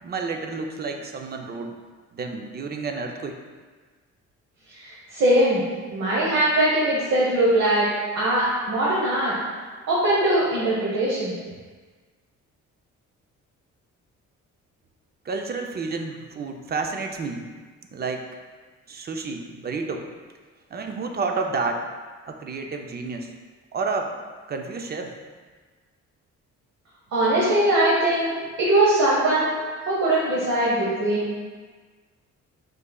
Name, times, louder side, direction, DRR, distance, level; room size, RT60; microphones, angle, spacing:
voice 1, 0.0-1.8 2.1-3.4 15.2-17.4 17.9-18.3 18.9-20.1 20.7-21.9 22.3-23.3 23.7-24.2 24.5-25.2, right 4 dB, 35° right, 4 dB, 0.5 m, -30 dB
voice 2, 4.7-7.9 8.1-9.3 9.9-11.3 27.1-29.6 29.9-31.3, right 1 dB, 65° right, -7 dB, 1.1 m, -21 dB
5.2 x 3.7 x 2.3 m, 1.4 s
cardioid pair, 90°, 30 cm